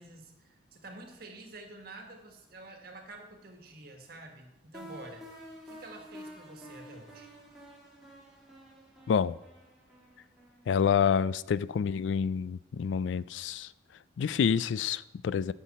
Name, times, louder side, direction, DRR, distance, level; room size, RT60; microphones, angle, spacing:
voice 1, 0.0-5.2 5.6-7.3, right 2 dB, 50° right, 1.6 m, -48 dB
sound 1, 4.7-11.5, equal, ahead, 2.0 m, -50 dB
voice 2, 9.1-9.4 10.7-13.7 14.2-15.5, left 7 dB, 75° left, 0.3 m, -28 dB
14.0 x 5.9 x 4.2 m
head